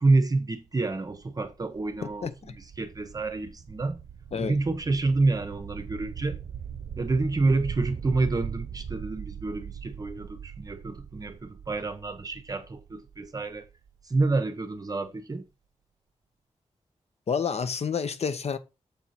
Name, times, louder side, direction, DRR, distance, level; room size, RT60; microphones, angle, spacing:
voice 1, 0.0-4.0 4.4-6.4 7.0-13.7 14.0-15.4, right 3 dB, 30° right, 0.7 m, -28 dB
sound 1, 0.6-14.3, right 8 dB, 65° right, 0.6 m, -41 dB
voice 2, 2.2-2.5 4.3-4.6 17.3-18.6, left 6 dB, 65° left, 0.8 m, -29 dB
7.1 x 4.5 x 4.1 m
wide cardioid pair, 135°, 12 cm